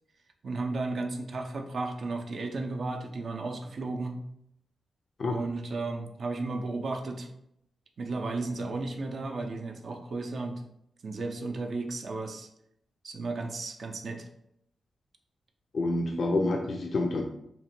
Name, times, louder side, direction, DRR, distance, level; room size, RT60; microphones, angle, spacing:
voice 1, 0.4-4.2 5.2-7.3 8.0-10.6 11.0-12.5 13.0-14.3, right 3 dB, 60° right, 3 dB, 0.4 m, -34 dB
voice 2, 15.7-17.3, left 2 dB, 60° left, 2 dB, 0.3 m, -28 dB
2.9 x 2.1 x 2.9 m, 0.75 s
cardioid pair, 80°, 0 cm